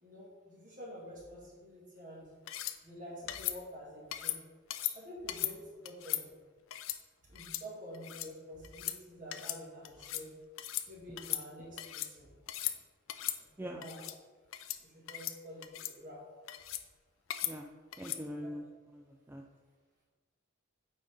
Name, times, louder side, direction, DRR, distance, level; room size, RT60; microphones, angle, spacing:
voice 1, 0.0-2.2 2.8-4.4 4.8-6.3 7.2-10.3 10.9-12.3 13.4-14.1 14.8-16.2 18.3-18.5, equal, 40° right, -5 dB, 2.0 m, -48 dB
sound 1, 2.5-2.8 3.3-3.6 4.1-4.4 4.7-4.9 5.3-5.5 5.9-6.2 6.7-7.0 7.4-7.6 7.9-8.3 8.6-9.0 9.3-9.6 9.8-10.3 10.6-10.9 11.2-12.1 12.5-12.8 13.1-13.4 13.8-14.2 14.5-14.8 15.1-15.4 15.6-15.9 16.5-16.8 17.3-17.5 17.9-18.2, left 13 dB, 90° left, 0.4 m, -37 dB
voice 2, 18.0-18.6 19.0-19.4, equal, 10° right, 1 dB, 0.3 m, -42 dB
8.7 x 4.1 x 3.6 m, 1.3 s
head